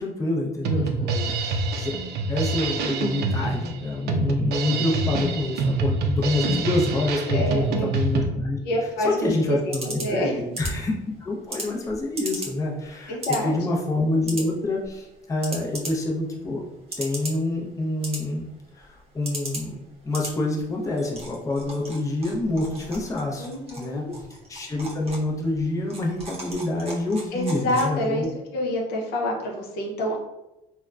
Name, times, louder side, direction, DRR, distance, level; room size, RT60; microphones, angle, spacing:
voice 1, 0.0-1.9 2.3-8.6 9.0-10.9 11.2-13.2 13.4-16.6 17.0-18.5 18.8-19.8 20.0-23.5 23.8-24.0 24.5-28.3, left 2 dB, 20° left, -2 dB, 0.5 m, -27 dB
Drum kit, 0.6-8.3, right 3 dB, 70° right, 0.4 m, -26 dB
voice 2, 0.8-1.3 7.3-7.9 8.6-10.4 13.1-13.5 23.4-24.1 27.3-28.2 28.5-30.2, equal, 85° left, -1 dB, 0.7 m, -28 dB
sound 1, 8.9-28.3, right 2 dB, 35° right, 0.7 m, -39 dB
3.5 x 2.1 x 2.3 m, 0.96 s
cardioid pair, 110°, 17 cm